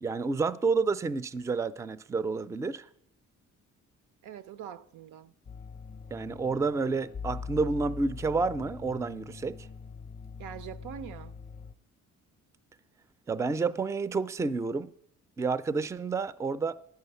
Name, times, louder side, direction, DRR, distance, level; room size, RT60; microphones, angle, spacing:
voice 1, 0.0-2.9 6.1-9.6 13.3-14.9 15.4-16.7, right 4 dB, 10° right, 0.3 m, -29 dB
voice 2, 4.2-5.4 10.4-11.4, right 9 dB, 90° right, 0.6 m, -43 dB
sound 1, 5.4-11.7, left 5 dB, 30° left, 0.6 m, -43 dB
9.4 x 5.6 x 8.0 m
cardioid pair, 90°, 30 cm